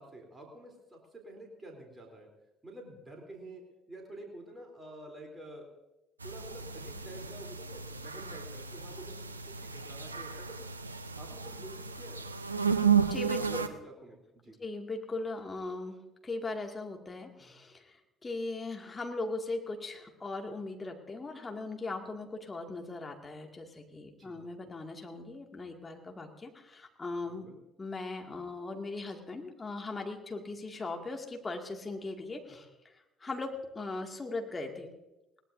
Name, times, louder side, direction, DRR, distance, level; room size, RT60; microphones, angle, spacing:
voice 1, 0.0-2.3 2.6-5.7 6.2-10.6 11.2-12.3 13.4-14.6 24.2-24.4 27.3-27.6, right 1 dB, 20° right, 1 dB, 3.5 m, -49 dB
sound 1, 6.2-13.7, right 6 dB, 85° right, 0.5 m, -33 dB
voice 2, 13.1-13.6 14.6-27.5 27.8-34.9, left 2 dB, 25° left, 2 dB, 2.2 m, -39 dB
21.0 x 18.5 x 2.7 m, 0.99 s
figure-of-eight pair, 50°, 0 cm